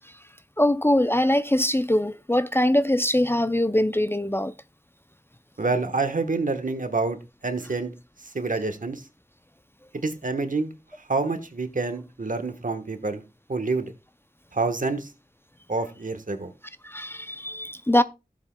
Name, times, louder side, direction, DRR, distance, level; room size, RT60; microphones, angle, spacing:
voice 1, 0.6-4.5 16.8-18.0, left 1 dB, 15° left, 0.4 m, -22 dB
voice 2, 5.6-7.9 8.3-9.0 9.9-10.7 11.1-13.2 13.5-13.9 14.5-15.1 15.7-16.5, right 3 dB, 65° right, 1.2 m, -27 dB
15.0 x 7.5 x 2.2 m
wide cardioid pair, 40°, 15 cm